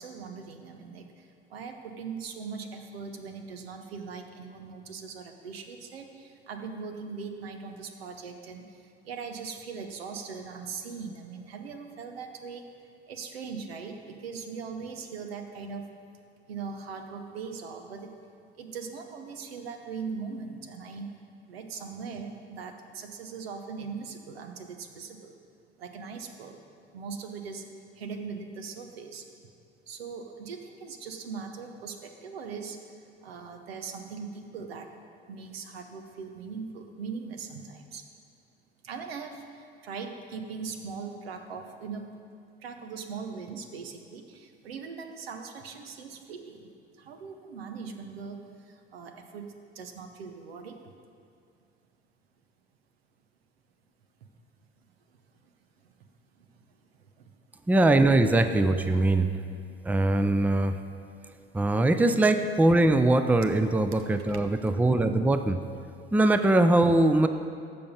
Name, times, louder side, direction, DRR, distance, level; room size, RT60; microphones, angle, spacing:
voice 1, 0.0-12.7 13.1-15.9 16.5-18.1 18.6-21.1 21.5-25.4 25.8-26.6 26.9-27.6 28.0-29.2 29.9-32.8 33.2-34.9 35.3-38.0 38.8-42.0 42.6-46.7 47.0-49.5 49.7-50.8 56.4-56.6 64.2-64.4, right 5 dB, 80° right, 5 dB, 0.9 m, -40 dB
voice 2, 57.7-59.3 59.8-60.8 61.5-65.6 66.1-67.3, right 2 dB, 5° right, 9 dB, 0.5 m, -22 dB
14.5 x 5.3 x 5.4 m, 2.4 s
figure-of-eight pair, 55°, 30 cm